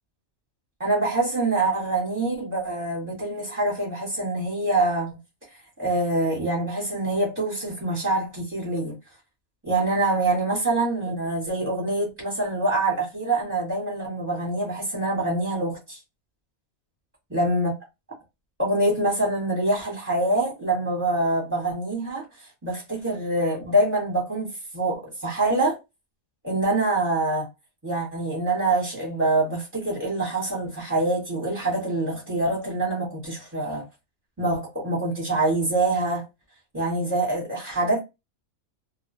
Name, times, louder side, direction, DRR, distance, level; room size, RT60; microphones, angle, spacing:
voice 1, 0.8-5.1 5.8-9.0 9.6-16.0 17.3-17.7 18.6-22.2 22.6-24.5 24.7-25.8 26.4-27.5 27.8-33.8 34.4-36.3 36.7-38.0, right 2 dB, 10° right, 1.0 m, -25 dB
2.4 x 2.3 x 2.6 m
omnidirectional pair, 1.5 m